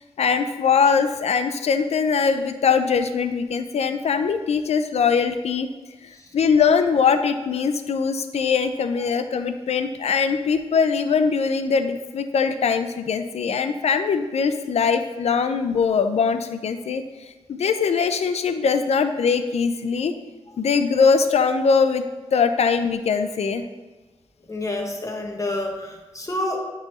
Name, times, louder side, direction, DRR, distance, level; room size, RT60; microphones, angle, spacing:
voice 1, 0.2-5.7 6.3-17.0 17.5-20.1 20.6-22.0 22.3-23.6, left 5 dB, 70° left, 9 dB, 0.5 m, -21 dB
voice 2, 24.5-26.6, left 1 dB, 30° left, 1 dB, 1.3 m, -28 dB
9.4 x 3.8 x 3.1 m, 1.2 s
cardioid pair, 50°, 11 cm